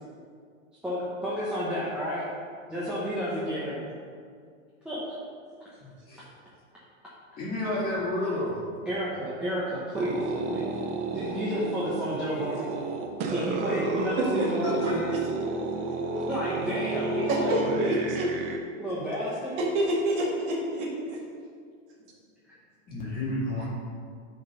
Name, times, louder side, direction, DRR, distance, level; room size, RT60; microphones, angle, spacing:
voice 1, 0.8-2.2 2.7-3.8 4.8-5.0 8.9-10.7 11.0-12.7 13.3-15.2 16.1-18.0 18.8-19.5 23.6-23.7, equal, 5° right, -10 dB, 0.9 m, -31 dB
voice 2, 5.8-6.3 7.4-8.6 22.9-23.7, left 1 dB, 20° left, -6 dB, 1.9 m, -30 dB
sound 1, 10.0-18.6, right 3 dB, 20° right, 0.4 m, -31 dB
voice 3, 14.1-14.5 14.8-15.2 17.3-18.3 19.6-21.2, right 1 dB, 45° right, -3 dB, 1.9 m, -28 dB
9.5 x 4.0 x 5.2 m, 2.1 s
supercardioid pair, 155°, 39 cm